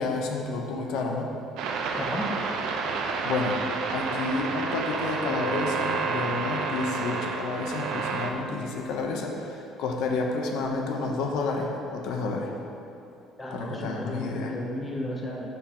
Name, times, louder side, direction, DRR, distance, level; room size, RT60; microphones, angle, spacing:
voice 1, 0.0-1.3 3.2-3.6 3.9-12.5 13.5-14.6, left 3 dB, 60° left, 2 dB, 0.6 m, -30 dB
sound 1, 1.6-8.3, right 4 dB, 65° right, 0.5 m, -30 dB
voice 2, 1.9-2.3 13.4-15.5, left 1 dB, 10° left, -1 dB, 0.6 m, -33 dB
6.6 x 3.8 x 5.5 m, 2.8 s
cardioid pair, 180°, 0 cm